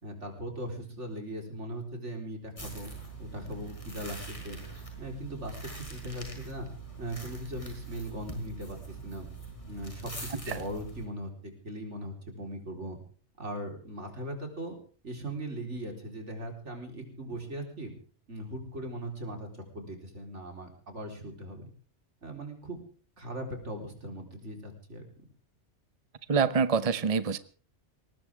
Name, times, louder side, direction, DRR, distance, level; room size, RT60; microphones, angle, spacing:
voice 1, 0.0-2.9 3.2-4.6 5.0-6.7 7.0-9.3 9.7-13.0 13.4-14.8 15.0-17.9 18.3-19.5 19.7-21.7 22.2-22.8 23.2-25.1, right 1 dB, 90° right, 3 dB, 4.4 m, -39 dB
sound 1, 2.6-11.1, right 3 dB, 30° left, 4.9 m, -43 dB
voice 2, 26.3-27.4, right 5 dB, 35° right, 14 dB, 0.9 m, -26 dB
21.0 x 19.0 x 3.6 m, 0.40 s
omnidirectional pair, 1.2 m